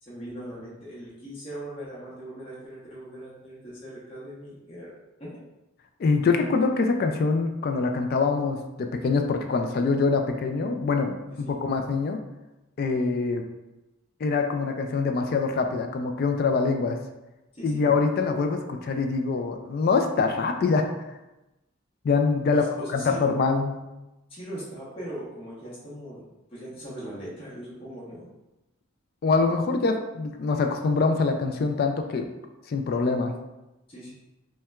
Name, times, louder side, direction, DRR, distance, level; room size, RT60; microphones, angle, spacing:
voice 1, 0.0-4.9 5.2-5.4 11.3-11.5 17.5-17.8 22.5-23.2 24.3-26.2 26.5-28.3 33.9-34.1, right 1 dB, 30° left, -8 dB, 1.0 m, -39 dB
voice 2, 6.0-12.2 12.8-13.4 14.2-17.0 17.6-20.9 22.0-22.7 22.9-23.8 29.2-32.3 32.7-33.3, left 4 dB, 50° left, 5 dB, 0.3 m, -24 dB
5.6 x 2.2 x 2.3 m, 0.99 s
head